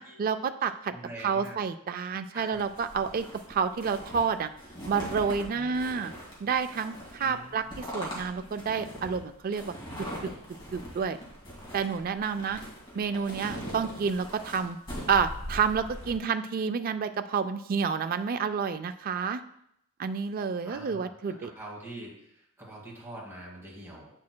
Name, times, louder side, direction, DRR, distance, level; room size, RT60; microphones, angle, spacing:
voice 1, 0.0-0.9 1.2-4.5 4.9-6.1 6.4-9.7 10.2-10.3 10.7-11.2 11.7-12.6 12.9-14.8 15.1-19.4 20.0-21.5, right 6 dB, 40° right, 9 dB, 0.3 m, -29 dB
voice 2, 0.9-1.6 2.3-2.6 5.5-5.7 7.2-7.7 12.5-12.7 20.6-24.1, right 1 dB, 10° right, -4 dB, 1.9 m, -44 dB
sound 1, 2.5-16.2, equal, 20° left, 2.0 m, -41 dB
8.4 x 6.3 x 2.2 m, 0.75 s
head